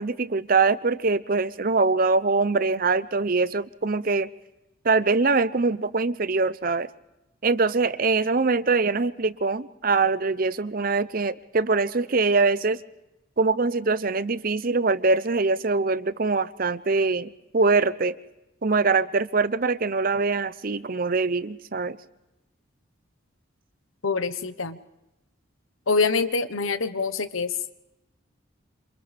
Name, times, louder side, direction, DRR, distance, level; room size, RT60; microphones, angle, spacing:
voice 1, 0.0-4.3 4.8-6.9 7.4-12.8 13.4-18.1 18.6-22.0, right 3 dB, 45° right, 15 dB, 0.7 m, -23 dB
voice 2, 24.0-24.8 25.9-27.5, left 4 dB, 85° left, 11 dB, 1.2 m, -25 dB
27.5 x 27.5 x 3.4 m, 0.95 s
head